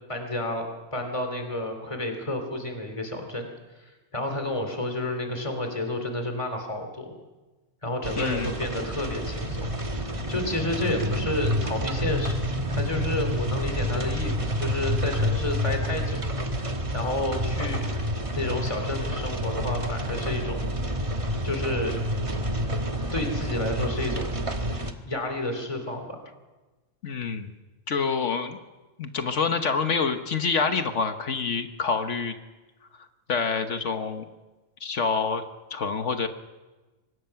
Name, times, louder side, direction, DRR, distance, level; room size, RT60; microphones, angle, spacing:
voice 1, 0.1-3.5 3.9-7.2 7.8-12.4 12.7-16.2 16.9-17.9 18.4-20.6 21.4-22.0 23.1-24.3 25.0-26.2, left 1 dB, 25° left, 5 dB, 2.9 m, -30 dB
sound 1, 8.0-24.9, equal, 25° right, 1.4 m, -29 dB
voice 2, 8.2-8.5 27.0-27.5 27.9-28.6 29.0-32.3 33.3-34.2 34.8-35.4 35.7-36.3, left 5 dB, 70° left, 7 dB, 1.5 m, -27 dB
24.0 x 19.5 x 5.8 m, 1.2 s
omnidirectional pair, 1.3 m